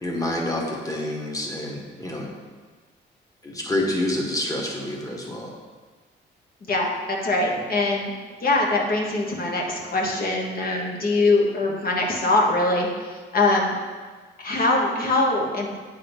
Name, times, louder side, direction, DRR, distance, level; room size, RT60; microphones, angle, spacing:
voice 1, 0.0-2.3 3.4-5.5, left 1 dB, 15° left, -1 dB, 1.4 m, -28 dB
voice 2, 6.6-8.1 8.4-13.8 14.4-15.8, left 2 dB, 50° left, -1 dB, 1.3 m, -23 dB
8.6 x 3.9 x 3.4 m, 1.4 s
cardioid pair, 90°, 20 cm